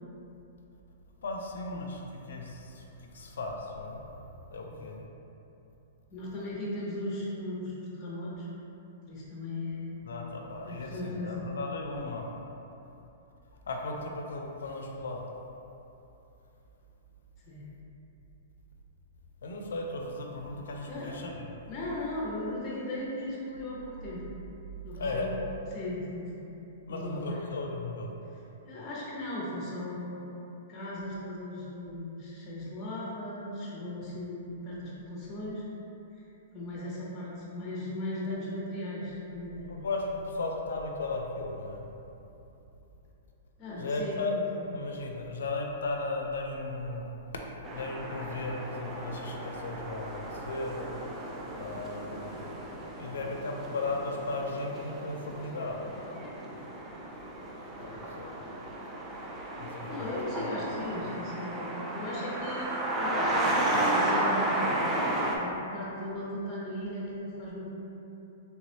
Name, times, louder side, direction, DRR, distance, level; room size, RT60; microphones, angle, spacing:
voice 1, 1.2-4.2 4.5-5.0 10.0-12.3 13.7-15.2 19.4-21.4 25.0-25.3 26.9-28.1 39.7-41.9 43.8-44.3 44.7-47.1 47.7-50.9 51.6-52.5 53.0-55.8 57.8-58.4 59.6-60.1, left 2 dB, 80° left, 1 dB, 0.4 m, -36 dB
voice 2, 4.6-5.0 6.1-8.5 9.1-9.9 10.7-11.5 17.4-17.6 20.8-21.1 21.7-24.3 24.8-26.4 26.9-27.4 28.3-30.2 30.7-35.7 36.5-39.8 43.6-44.7 59.9-62.7 63.0-64.7 65.3-67.7, left 1 dB, 25° left, -6 dB, 0.9 m, -37 dB
sound 1, 47.6-65.4, right 1 dB, 20° right, 0.4 m, -33 dB
3.3 x 3.0 x 2.8 m, 3.0 s
hypercardioid pair, 130°, 0 cm